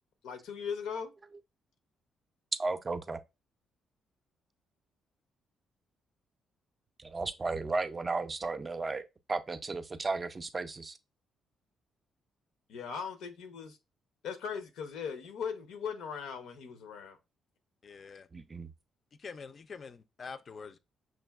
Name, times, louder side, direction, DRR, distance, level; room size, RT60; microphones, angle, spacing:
voice 1, 0.2-1.1 12.7-13.8 14.2-17.2, left 6 dB, 85° left, 0.6 m, -39 dB
voice 2, 2.6-3.2 7.0-11.0 18.3-18.7, right 3 dB, 30° right, 0.4 m, -34 dB
voice 3, 17.8-18.3 19.2-20.8, left 5 dB, 45° left, 0.3 m, -45 dB
5.9 x 2.5 x 2.3 m
cardioid pair, 90°, 0 cm